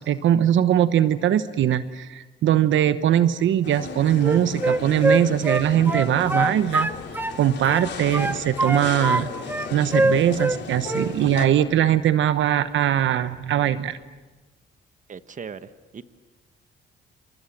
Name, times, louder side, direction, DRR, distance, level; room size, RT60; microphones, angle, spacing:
voice 1, 0.0-6.9 7.4-9.3 9.7-14.0, right 11 dB, 75° right, 12 dB, 1.0 m, -21 dB
sound 1, 3.6-11.5, left 6 dB, 60° left, 3.4 m, -36 dB
Wind instrument woodwind instrument, 4.2-7.4 7.6-9.2 9.5-10.6 10.8-11.1, right 2 dB, 10° right, 0.9 m, -23 dB
sound 2, 6.8-14.1, left 5 dB, 85° left, 6.5 m, -51 dB
voice 2, 15.1-16.0, right 6 dB, 40° right, 12 dB, 1.3 m, -38 dB
28.5 x 28.0 x 7.4 m, 1.2 s
cardioid pair, 90°, 20 cm